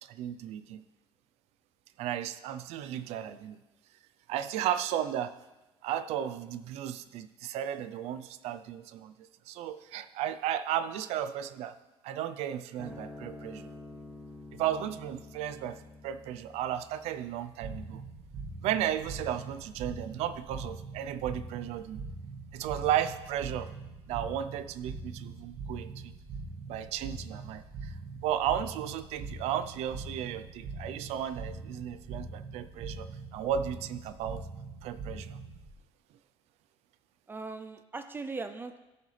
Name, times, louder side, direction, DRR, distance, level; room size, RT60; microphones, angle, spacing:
voice 1, 0.0-0.8 2.0-3.6 4.3-5.3 5.8-11.7 12.0-13.7 14.5-15.8 16.0-18.0 18.6-22.0 22.5-23.7 24.1-26.1 26.7-27.9 28.2-34.4 34.8-35.4, right 10 dB, 80° right, 12 dB, 0.6 m, -34 dB
sound 1, 12.8-19.4, left 2 dB, ahead, 1.4 m, -49 dB
sound 2, 17.6-35.7, right 3 dB, 60° right, 1.7 m, -42 dB
voice 2, 37.3-38.8, right 3 dB, 20° right, 8 dB, 0.5 m, -39 dB
16.5 x 7.0 x 3.3 m, 1.0 s
cardioid pair, 150°, 11 cm